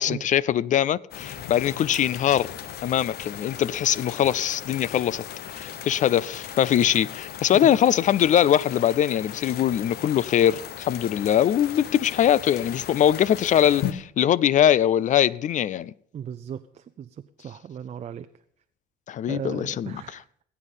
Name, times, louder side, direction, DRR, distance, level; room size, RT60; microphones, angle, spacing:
voice 1, 0.0-2.5 2.8-5.2 5.5-15.9 19.1-20.2, left 10 dB, 50° left, 0.5 m, -22 dB
sound 1, 1.1-13.9, left 10 dB, 70° left, 1.2 m, -37 dB
voice 2, 16.1-17.1 17.4-18.3 19.3-20.4, right 8 dB, 40° right, 0.6 m, -37 dB
19.5 x 8.4 x 5.5 m
cardioid pair, 110°, 17 cm